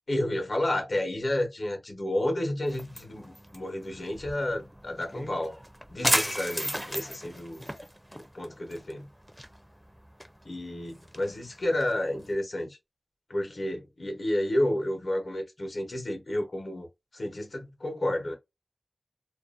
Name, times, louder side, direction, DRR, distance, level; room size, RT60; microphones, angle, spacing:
voice 1, 0.1-5.6 5.9-7.7 8.3-9.1 10.4-12.8 13.3-16.9 17.1-18.3, left 1 dB, 80° left, 0.9 m, -31 dB
sound 1, 2.7-12.3, equal, 5° right, 0.4 m, -35 dB
2.5 x 2.1 x 2.4 m
wide cardioid pair, 70°, 0 cm